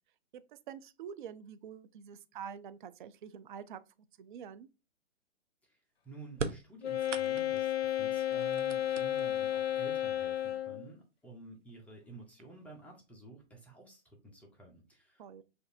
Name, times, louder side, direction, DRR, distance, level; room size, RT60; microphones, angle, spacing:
voice 1, 0.5-3.8 4.2-4.7 15.2-15.4, right 8 dB, 45° right, 0.4 m, -46 dB
voice 2, 6.0-15.4, right 3 dB, 5° left, 0.7 m, -52 dB
sound 1, 6.3-7.7 8.3-9.5 10.5-10.6 11.6-11.7 12.2-12.7, right 5 dB, 85° right, 0.7 m, -40 dB
Wind instrument woodwind instrument, 6.8-10.9, left 12 dB, 60° left, 0.6 m, -32 dB
6.4 x 2.6 x 2.6 m
figure-of-eight pair, 125°, 35 cm